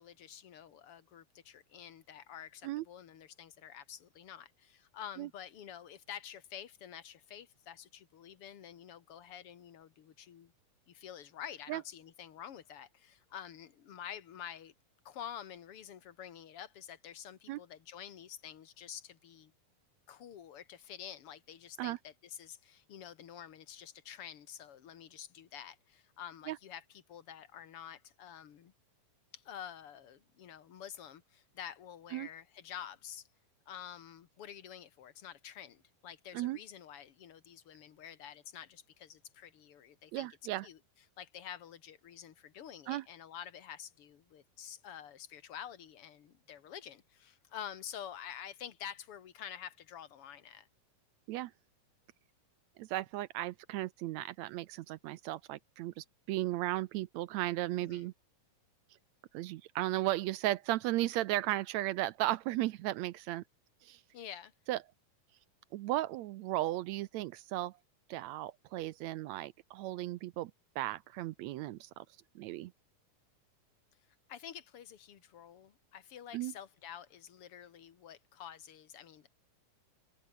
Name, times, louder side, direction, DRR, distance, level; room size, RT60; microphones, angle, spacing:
voice 1, 0.0-10.5 10.9-14.7 15.1-19.5 20.1-28.7 29.3-33.3 33.7-40.3 40.6-40.8 41.2-50.7 57.8-58.1 64.1-64.5 74.3-79.3, left 9 dB, 50° left, 2.1 m, -48 dB
voice 2, 40.1-40.7 42.9-43.0 51.3-51.5 52.8-58.1 59.3-63.4 63.8-64.0 64.7-64.8 65.7-67.7 68.1-72.1 72.4-72.7 76.3-76.5, right 16 dB, 80° right, 1.6 m, -35 dB
omnidirectional pair, 3.7 m